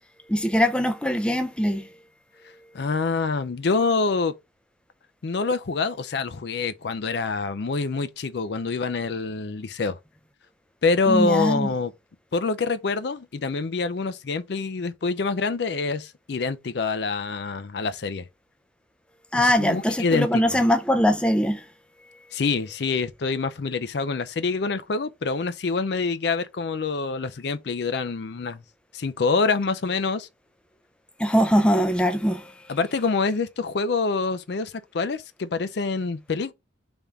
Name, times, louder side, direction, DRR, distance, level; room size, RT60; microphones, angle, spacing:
voice 1, 0.3-1.9 11.1-11.7 19.3-21.6 31.2-32.7, equal, 5° left, 0.4 m, -22 dB
voice 2, 2.7-4.3 5.2-10.0 10.8-11.9 12.3-18.3 19.3-20.6 22.3-28.6 28.9-30.3 32.7-36.5, left 4 dB, 60° left, 0.5 m, -26 dB
3.6 x 3.5 x 4.0 m
head